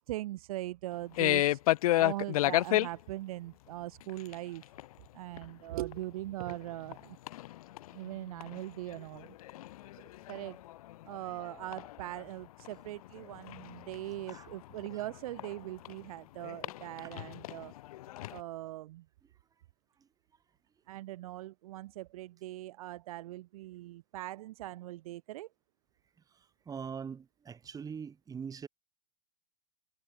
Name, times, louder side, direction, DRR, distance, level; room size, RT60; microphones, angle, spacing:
voice 1, 0.0-1.6 2.0-4.6 5.1-7.2 7.9-9.3 10.3-10.6 11.0-17.7 18.3-19.0 20.9-25.5, right 16 dB, 60° right, 1.3 m, -41 dB
sound 1, 1.2-2.9 4.0-4.4 4.6-4.9 5.4-5.5 5.9-6.0 6.3-7.0 7.3-8.6 8.9-12.2 12.6-15.9 16.4-18.4, left 15 dB, 60° left, 1.5 m, -32 dB
voice 2, 26.7-28.7, right 6 dB, 15° right, 3.9 m, -42 dB
hypercardioid pair, 115°, 21 cm